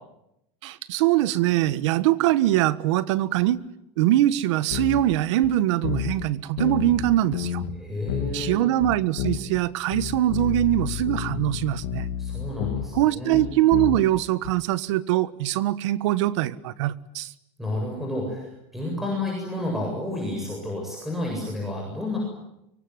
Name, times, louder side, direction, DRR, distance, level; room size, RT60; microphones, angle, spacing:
voice 1, 0.6-3.6 4.0-7.6 8.3-12.1 12.9-17.3, right 14 dB, 80° right, 15 dB, 1.5 m, -22 dB
sound 1, 4.7-5.2 5.4-5.5 5.8-6.3 6.6-7.8 8.1-9.6 9.9-14.5, left 11 dB, 85° left, 3.5 m, -30 dB
voice 2, 7.7-8.6 12.2-13.5 17.6-22.2, left 1 dB, ahead, -1 dB, 7.8 m, -30 dB
24.5 x 24.0 x 9.7 m, 0.84 s
supercardioid pair, 155°, 15 cm